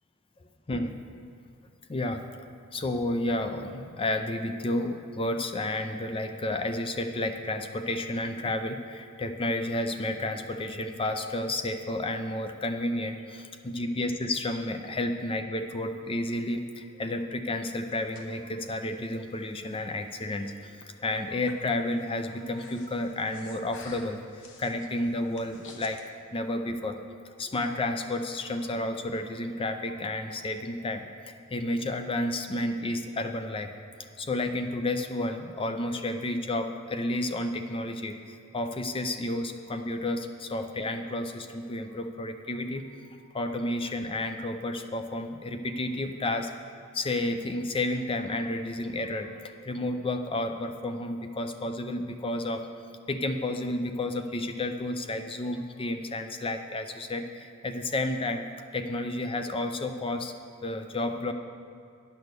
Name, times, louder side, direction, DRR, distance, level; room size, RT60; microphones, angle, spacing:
voice 1, 1.9-2.2 2.7-26.0 26.3-27.0 27.4-33.7 34.2-42.8 43.3-46.5 46.9-52.6 53.1-58.5 58.7-61.3, left 1 dB, 25° left, 7 dB, 0.5 m, -31 dB
Breathing, 17.5-26.0, left 3 dB, 65° left, 1.0 m, -52 dB
10.5 x 6.2 x 6.7 m, 2.4 s
head